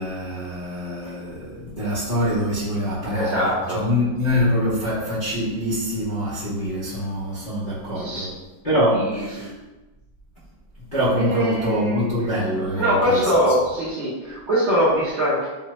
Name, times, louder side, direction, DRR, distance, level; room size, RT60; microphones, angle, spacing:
voice 1, 0.0-8.4 8.6-9.5 10.9-13.4, equal, 60° left, -11 dB, 0.5 m, -24 dB
voice 2, 3.1-3.8 7.9-8.3 8.9-9.5 11.2-12.1 12.8-15.5, equal, 65° right, -9 dB, 0.7 m, -22 dB
3.3 x 2.0 x 2.8 m, 1.1 s
omnidirectional pair, 2.0 m